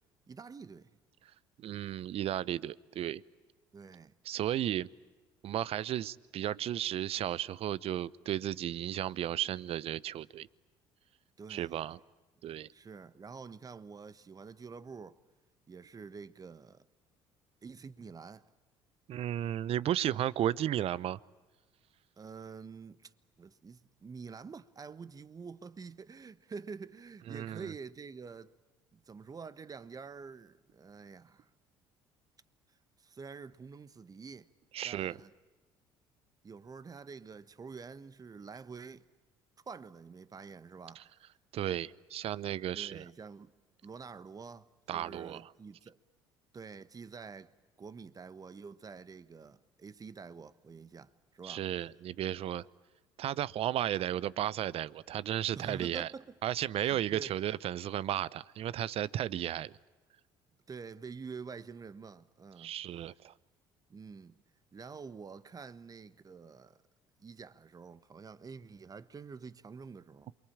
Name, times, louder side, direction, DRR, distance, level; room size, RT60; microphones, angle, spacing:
voice 1, 0.3-1.0 3.7-4.1 11.4-11.8 12.7-15.2 15.7-16.8 17.6-18.5 22.2-23.1 23.4-28.5 28.9-31.5 33.0-34.5 34.8-35.3 36.4-39.1 39.7-41.1 42.7-43.5 43.8-46.0 46.5-47.5 47.8-51.7 55.5-56.3 56.8-57.4 60.7-62.7 63.9-64.4 64.7-66.8 67.2-70.3, right 5 dB, 30° right, 1.3 m, -47 dB
voice 2, 1.6-3.2 4.2-4.9 5.4-10.5 11.5-12.0 12.4-12.7 19.1-21.2 27.3-27.7 34.7-35.2 41.0-41.1 41.5-43.0 44.9-45.4 51.4-52.6 53.2-56.1 56.4-59.7 62.6-63.3, right 11 dB, 55° right, 0.8 m, -34 dB
28.0 x 23.0 x 8.8 m
supercardioid pair, 70°, 12 cm